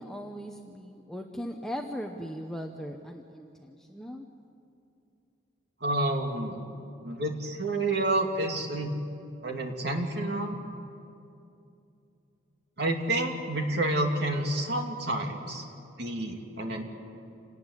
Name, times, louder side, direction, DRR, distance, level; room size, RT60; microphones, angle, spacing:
voice 1, 0.0-4.3, equal, 5° left, 2 dB, 0.9 m, -39 dB
voice 2, 5.8-6.6 7.0-9.0 9.4-10.6 12.8-15.6 16.0-16.8, right 1 dB, 55° right, 2 dB, 2.7 m, -29 dB
27.0 x 19.0 x 9.8 m, 2.7 s
head